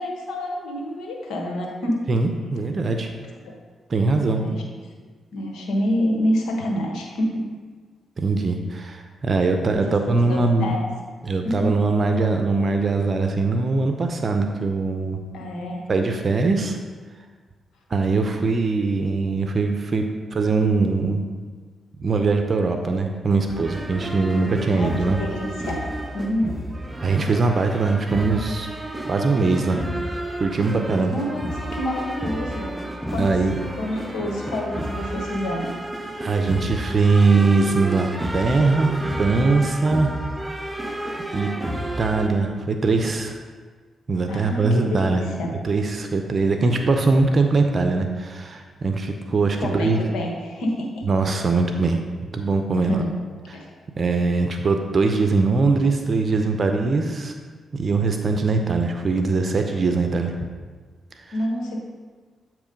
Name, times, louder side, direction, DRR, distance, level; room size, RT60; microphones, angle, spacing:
voice 1, 0.0-2.0 3.4-3.5 4.4-4.6 5.3-7.5 9.7-10.8 11.4-11.7 15.3-15.8 24.7-25.9 26.1-26.6 31.1-32.7 33.1-33.3 33.8-35.6 44.3-45.5 49.6-50.9 52.8-53.2 53.5-53.7 55.7-55.8 61.3-61.8, equal, 80° left, 0 dB, 1.2 m, -27 dB
voice 2, 2.1-3.1 3.9-4.4 8.2-10.7 11.2-15.2 15.9-16.8 17.9-20.0 20.3-21.2 22.0-25.2 27.0-28.7 29.1-29.9 30.4-31.1 33.2-33.5 36.2-40.1 41.3-41.5 42.0-43.4 44.1-45.2 45.6-50.0 51.1-52.0 52.3-53.0 53.5-53.6 54.0-57.3 57.7-60.3, right 3 dB, 50° right, 5 dB, 0.6 m, -21 dB
sound 1, 23.5-42.3, right 1 dB, 15° right, 0.7 m, -31 dB
8.2 x 3.1 x 5.1 m, 1.5 s
supercardioid pair, 60°, 0 cm